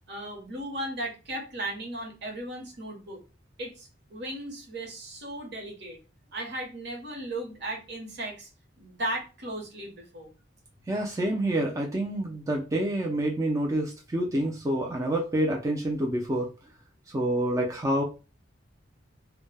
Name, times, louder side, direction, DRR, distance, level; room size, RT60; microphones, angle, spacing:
voice 1, 0.1-3.2 3.6-6.0 6.3-8.5 8.8-10.3, right 1 dB, 60° right, 1 dB, 0.9 m, -36 dB
voice 2, 10.9-16.5 17.1-18.0, right 1 dB, 15° right, -1 dB, 0.4 m, -27 dB
2.1 x 2.1 x 3.2 m, 0.31 s
head